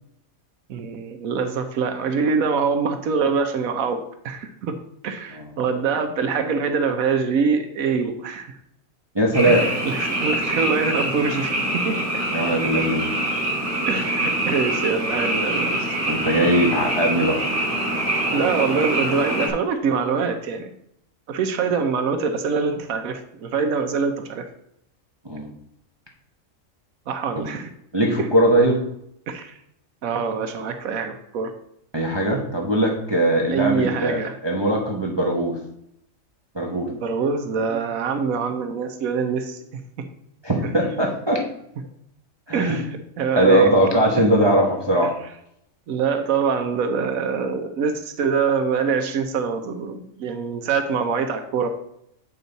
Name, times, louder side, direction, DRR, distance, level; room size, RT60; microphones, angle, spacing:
voice 1, 0.7-4.7 5.0-8.6 9.4-12.0 13.9-15.9 16.5-16.6 18.3-20.7 21.3-24.5 27.1-27.7 28.2-28.3 29.3-29.6 30.0-31.5 33.5-34.4 36.9-39.8 40.6-40.7 42.5-42.9 43.2-43.7 45.9-51.7, right 5 dB, 90° right, 7 dB, 1.2 m, -24 dB
voice 2, 9.1-9.7 12.3-13.1 16.1-17.4 25.2-25.5 27.4-27.5 27.9-28.8 31.9-35.6 36.5-36.9 40.4-41.4 42.5-42.8 43.4-45.1, right 1 dB, 20° right, 0 dB, 0.9 m, -20 dB
Frog, 9.3-19.5, right 1 dB, 40° right, 2.7 m, -25 dB
8.6 x 5.5 x 4.0 m, 0.74 s
omnidirectional pair, 1.4 m